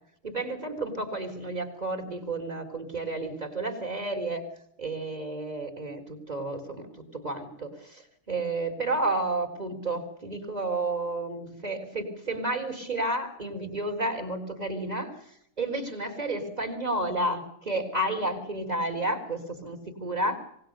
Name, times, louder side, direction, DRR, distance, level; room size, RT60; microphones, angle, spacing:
voice 1, 0.2-4.4 4.8-6.9 7.1-15.2 15.6-20.4, right 2 dB, 20° right, 5 dB, 4.1 m, -31 dB
26.5 x 20.0 x 6.8 m, 0.72 s
omnidirectional pair, 2.4 m